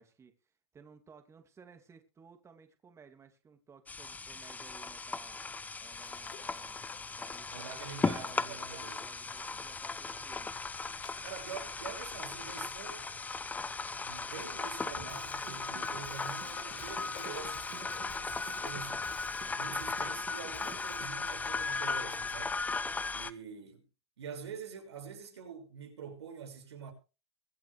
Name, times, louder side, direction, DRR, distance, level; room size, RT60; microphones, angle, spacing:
voice 1, 0.0-5.4 5.8-6.8 7.2-10.6, right 6 dB, 20° right, 2.6 m, -58 dB
sound 1, 3.9-23.3, left 4 dB, 10° left, 0.9 m, -37 dB
sound 2, 5.9-22.0, left 10 dB, 45° left, 3.9 m, -55 dB
voice 2, 7.5-9.0 11.2-13.1 13.6-19.0 19.6-22.6 23.1-23.8 24.2-26.9, right 6 dB, 90° right, 5.9 m, -46 dB
Drum kit / Drum, 15.1-21.1, right 10 dB, 35° right, 2.4 m, -53 dB
23.5 x 8.1 x 3.4 m
hypercardioid pair, 110°, 14 cm